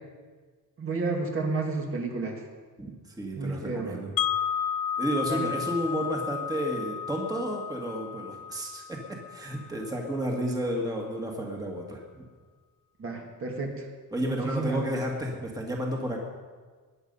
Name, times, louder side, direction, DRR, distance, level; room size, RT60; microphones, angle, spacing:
voice 1, 0.8-2.4 3.4-4.0 5.2-5.5 13.0-13.9 14.2-15.0, right 3 dB, 40° right, 1 dB, 2.0 m, -31 dB
voice 2, 2.8-4.1 5.0-12.3 14.1-16.2, equal, 10° right, 0 dB, 1.8 m, -32 dB
Wind chime, 4.2-10.1, left 8 dB, 70° left, 0.6 m, -33 dB
22.0 x 9.5 x 5.5 m, 1.5 s
cardioid pair, 170°, 34 cm